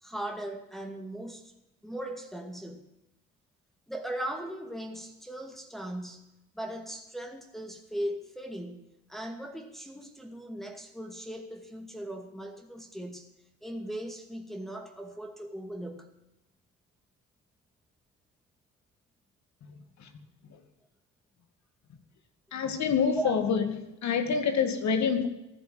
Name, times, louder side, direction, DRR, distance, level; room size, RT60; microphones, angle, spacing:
voice 1, 0.0-1.5 1.8-2.9 3.9-6.3 6.5-13.3 13.6-16.1 23.2-23.3, right 1 dB, ahead, 3 dB, 2.2 m, -38 dB
voice 2, 19.6-20.1 20.5-20.6 22.5-23.7 24.0-25.3, left 6 dB, 65° left, 8 dB, 2.4 m, -27 dB
15.0 x 10.5 x 7.9 m, 0.92 s
cardioid pair, 90°, 30 cm